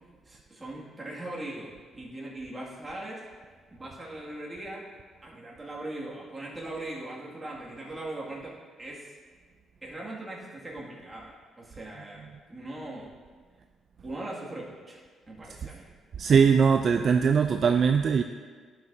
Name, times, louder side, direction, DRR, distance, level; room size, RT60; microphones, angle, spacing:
voice 1, 0.3-1.7 2.0-3.2 3.7-4.9 5.2-9.1 9.8-13.1 14.0-15.9, right 1 dB, 20° right, -4 dB, 2.1 m, -40 dB
voice 2, 16.2-18.2, right 6 dB, 50° right, 6 dB, 0.3 m, -21 dB
11.5 x 5.9 x 2.7 m, 1.6 s
cardioid pair, 90°, 0 cm